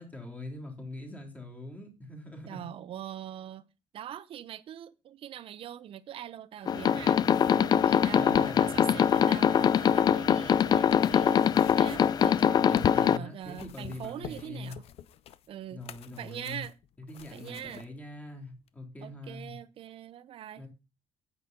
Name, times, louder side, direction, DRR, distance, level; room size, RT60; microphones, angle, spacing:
voice 1, 0.0-2.7 8.1-8.9 12.7-14.8 15.7-16.6 17.0-19.5 20.6-20.7, left 2 dB, 15° left, 3.5 m, -43 dB
voice 2, 2.5-3.6 3.9-7.2 7.5-11.4 11.7-14.8 15.5-15.8 16.2-16.7 17.3-17.8 19.0-20.6, right 10 dB, 55° right, 0.9 m, -42 dB
sound 1, 6.7-13.2, left 8 dB, 40° left, 0.5 m, -23 dB
sound 2, 8.3-13.0 13.4-17.9 18.7-18.8, left 11 dB, 65° left, 0.8 m, -47 dB
9.6 x 8.6 x 5.4 m
cardioid pair, 145°, 11 cm